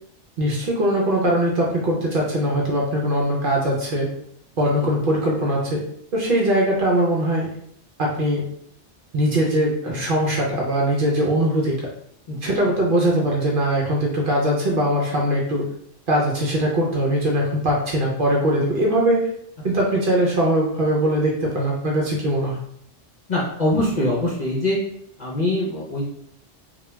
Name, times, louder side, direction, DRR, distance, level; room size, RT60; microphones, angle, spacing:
voice 1, 0.4-4.1 4.6-5.8 6.1-7.5 8.0-8.4 9.1-11.9 12.4-15.6 16.1-19.3 19.6-22.6, right 1 dB, 55° right, -3 dB, 0.6 m, -21 dB
voice 2, 23.3-24.8 25.2-26.0, left 1 dB, 50° left, -5 dB, 0.6 m, -23 dB
2.2 x 2.2 x 3.0 m, 0.71 s
omnidirectional pair, 1.2 m